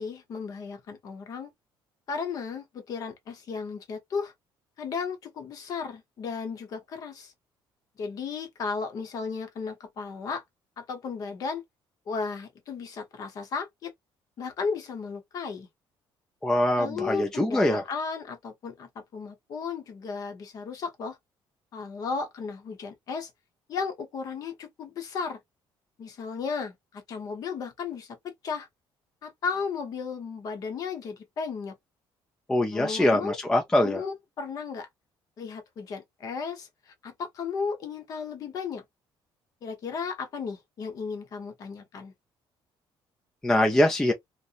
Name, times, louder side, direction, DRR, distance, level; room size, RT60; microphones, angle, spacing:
voice 1, 0.0-1.5 2.1-4.3 4.8-7.3 8.0-10.4 10.8-11.6 12.1-13.9 14.4-15.7 16.8-21.2 21.7-23.3 23.7-25.4 26.0-28.7 29.2-31.7 32.7-33.4 33.8-34.9 35.4-38.8 39.6-42.1, left 5 dB, 40° left, 0.7 m, -34 dB
voice 2, 16.4-17.8 32.5-34.0 43.4-44.1, left 1 dB, 5° left, 0.3 m, -23 dB
2.7 x 2.0 x 2.4 m
cardioid pair, 180°, 9 cm